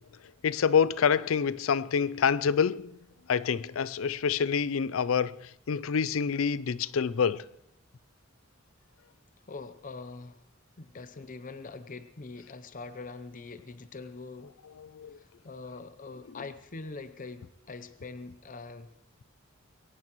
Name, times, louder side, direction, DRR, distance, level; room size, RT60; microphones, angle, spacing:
voice 1, 0.4-2.9 3.3-5.4 5.7-7.4 15.0-15.1, left 6 dB, 80° left, 0.5 m, -26 dB
voice 2, 9.5-10.4 10.8-14.5 15.2-18.9, left 3 dB, 40° left, 0.7 m, -43 dB
22.5 x 18.0 x 3.1 m
head